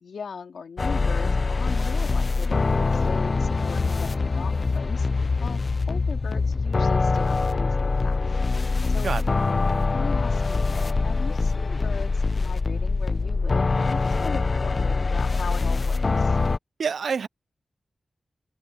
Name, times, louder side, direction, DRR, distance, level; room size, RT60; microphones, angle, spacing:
voice 1, 0.0-5.1 5.4-5.6 5.9-8.4 8.8-9.1 9.9-16.4, left 5 dB, 85° left, 3.2 m, -38 dB
sound 1, 0.8-16.6, left 3 dB, 40° left, 0.6 m, -24 dB
voice 2, 16.8-17.3, right 6 dB, 80° right, 0.5 m, -26 dB
wide cardioid pair, 120°, 0 cm